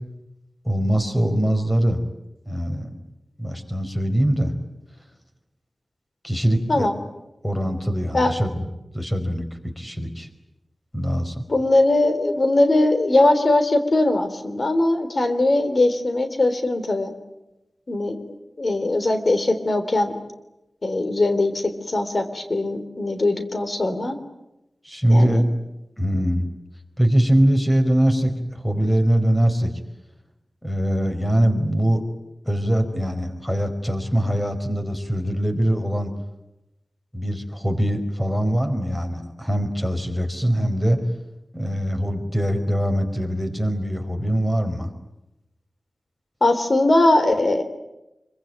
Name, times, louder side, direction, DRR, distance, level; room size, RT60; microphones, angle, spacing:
voice 1, 0.6-2.0 2.5-3.0 3.4-4.5 6.2-6.9 7.4-8.7 8.9-10.3 10.9-11.4 24.8-25.4 26.0-26.5 27.0-29.7 30.6-32.0 32.4-36.1 37.1-41.0 41.5-44.9, right 1 dB, 10° left, 7 dB, 4.8 m, -22 dB
voice 2, 11.5-17.1 17.9-18.2 18.6-20.2 20.8-24.2 25.1-25.4 46.4-47.6, left 2 dB, 45° left, 8 dB, 3.5 m, -20 dB
26.0 x 24.0 x 9.3 m, 0.92 s
wide cardioid pair, 95°, 0 cm